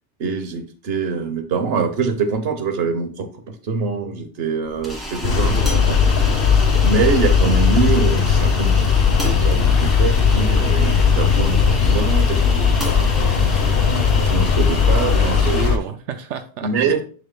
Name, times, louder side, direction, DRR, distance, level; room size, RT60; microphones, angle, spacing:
voice 1, 0.2-6.2 6.8-13.6 13.9-15.6 16.6-17.0, right 5 dB, 60° right, 7 dB, 1.1 m, -24 dB
sound 1, 4.7-15.7, equal, ahead, 2.1 m, -31 dB
sound 2, 5.2-15.8, left 6 dB, 60° left, 0.7 m, -17 dB
voice 2, 5.3-5.7 10.2-10.4 15.1-17.0, right 8 dB, 85° right, 7 dB, 0.9 m, -30 dB
7.4 x 6.5 x 2.2 m, 0.42 s
omnidirectional pair, 1.2 m